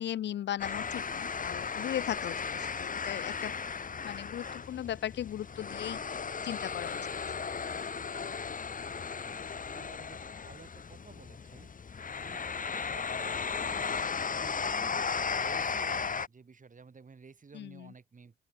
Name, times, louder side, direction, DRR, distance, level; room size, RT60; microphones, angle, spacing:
voice 1, 0.0-3.5 4.0-6.0 6.4-7.0 17.5-17.9, left 11 dB, 70° left, 0.6 m, -37 dB
sound 1, 0.6-16.3, left 5 dB, 45° left, 2.0 m, -36 dB
voice 2, 9.2-11.7 12.2-14.1 14.4-18.3, right 5 dB, 45° right, 6.9 m, -53 dB
open air
cardioid pair, 60°, 19 cm